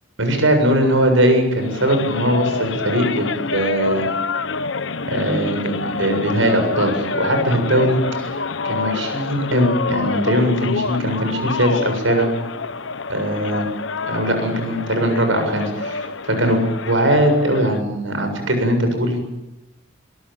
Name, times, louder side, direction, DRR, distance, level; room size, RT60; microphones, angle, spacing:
voice 1, 0.2-4.1 5.1-8.3 8.7-12.3 13.1-13.6 14.1-19.2, right 1 dB, 85° right, 6 dB, 7.3 m, -20 dB
sound 1, 1.6-17.8, left 4 dB, 70° left, 1.0 m, -27 dB
23.5 x 23.0 x 9.2 m, 0.95 s
head